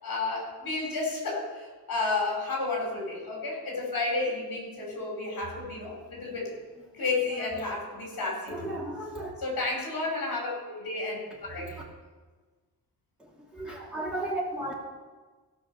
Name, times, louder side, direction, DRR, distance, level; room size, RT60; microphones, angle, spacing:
voice 1, 0.0-6.5 6.9-8.7 9.4-11.8, left 3 dB, 60° left, -1 dB, 4.7 m, -32 dB
voice 2, 8.5-9.3 11.6-11.7 13.2-14.7, right 1 dB, ahead, -4 dB, 2.6 m, -35 dB
17.0 x 5.8 x 6.9 m, 1.3 s
wide cardioid pair, 180°, 38 cm